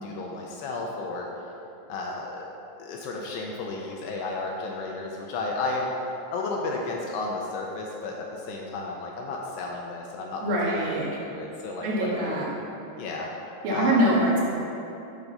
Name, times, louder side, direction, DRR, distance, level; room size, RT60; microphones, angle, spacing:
voice 1, 0.0-1.3 1.9-2.4 2.8-5.9 6.3-12.5 13.0-13.3 13.7-14.1, left 3 dB, 85° left, -1 dB, 2.5 m, -33 dB
voice 2, 10.4-11.1 11.8-12.4 13.6-14.4, right 1 dB, 70° right, -5 dB, 3.3 m, -24 dB
10.5 x 5.9 x 4.0 m, 2.8 s
omnidirectional pair, 5.2 m